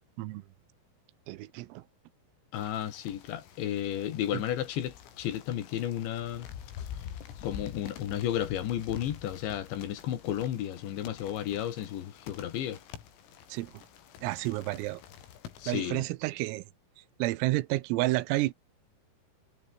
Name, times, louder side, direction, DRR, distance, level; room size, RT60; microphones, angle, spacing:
voice 1, 1.3-1.8 13.5-13.7 14.2-15.0 15.7-16.6 17.2-18.5, right 19 dB, 85° right, 3.6 m, -30 dB
sound 1, 2.5-15.9, left 9 dB, 85° left, 6.1 m, -47 dB
voice 2, 2.5-6.5 7.4-12.8 15.6-16.1, left 11 dB, 65° left, 4.0 m, -33 dB
omnidirectional pair, 6.0 m